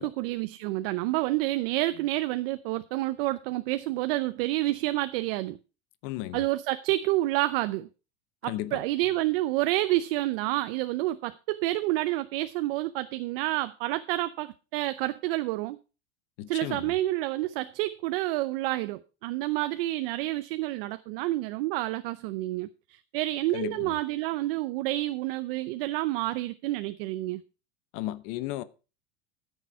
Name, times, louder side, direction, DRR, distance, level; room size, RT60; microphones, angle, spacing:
voice 1, 0.0-5.6 6.3-7.9 8.4-15.8 16.5-27.4, right 17 dB, 60° right, 0.7 m, -29 dB
voice 2, 6.0-6.4 8.5-8.8 16.4-17.0 23.5-24.0 27.9-28.6, left 15 dB, 55° left, 0.9 m, -34 dB
14.0 x 6.6 x 4.7 m
supercardioid pair, 150°, 31 cm